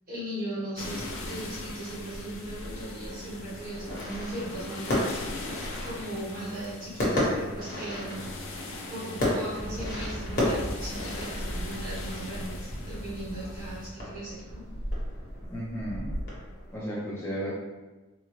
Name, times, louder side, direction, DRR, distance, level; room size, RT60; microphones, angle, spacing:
voice 1, 0.1-5.2 5.7-8.4 8.9-14.6, right 1 dB, 40° right, -8 dB, 1.3 m, -38 dB
sound 1, 0.8-13.9, left 2 dB, 60° left, 0.5 m, -40 dB
sound 2, 3.5-16.8, left 1 dB, 45° left, 1.1 m, -34 dB
sound 3, 9.6-15.4, equal, 60° right, 0.9 m, -41 dB
voice 2, 15.5-16.1 16.7-17.5, equal, 10° left, -9 dB, 0.6 m, -34 dB
3.7 x 2.3 x 3.1 m, 1.2 s
head